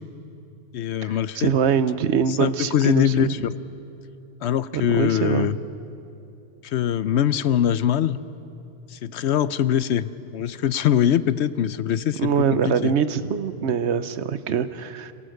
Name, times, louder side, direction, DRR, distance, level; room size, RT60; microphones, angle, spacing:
voice 1, 0.7-1.5 2.3-3.5 4.4-5.6 6.6-8.2 8.9-12.9, left 10 dB, 75° left, 15 dB, 0.9 m, -23 dB
voice 2, 1.4-3.3 4.7-5.6 12.2-15.1, right 7 dB, 75° right, 13 dB, 1.1 m, -23 dB
28.0 x 18.0 x 6.5 m, 2.8 s
omnidirectional pair, 1.2 m